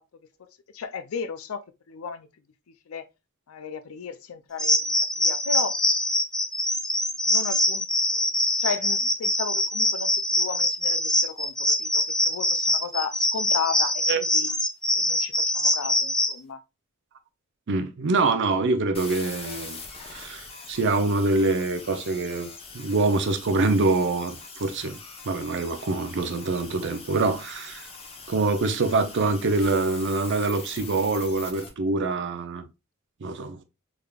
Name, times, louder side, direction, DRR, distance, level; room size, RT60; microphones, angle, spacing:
voice 1, 0.4-2.3 2.9-3.1 3.5-5.7 7.3-7.9 8.1-8.3 8.6-14.5 15.0-16.6, left 5 dB, 70° left, 0.4 m, -34 dB
sound 1, 4.6-16.4, left 1 dB, 5° left, 0.3 m, -24 dB
voice 2, 17.7-19.8 20.1-22.5 22.7-25.0 25.2-27.9 28.3-32.6 33.2-33.6, right 3 dB, 55° right, 0.6 m, -25 dB
sound 2, 18.9-31.7, left 4 dB, 30° left, 0.8 m, -42 dB
3.6 x 3.4 x 2.3 m
head